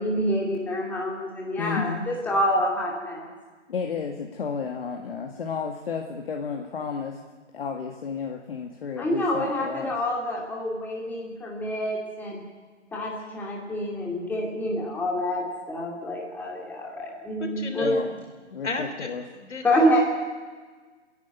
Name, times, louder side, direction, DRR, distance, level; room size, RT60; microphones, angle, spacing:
voice 1, 0.0-3.3 9.0-12.4 12.9-17.9 19.6-20.0, equal, 5° left, -2 dB, 2.6 m, -27 dB
voice 2, 1.6-2.1 3.7-7.2 7.5-9.9 17.8-18.1 18.5-19.2, left 6 dB, 50° left, 2 dB, 2.0 m, -32 dB
voice 3, 17.4-18.1 18.6-19.1 19.3-19.7, left 4 dB, 70° left, 6 dB, 3.4 m, -32 dB
28.5 x 10.5 x 9.3 m, 1.4 s
figure-of-eight pair, 150°, 37 cm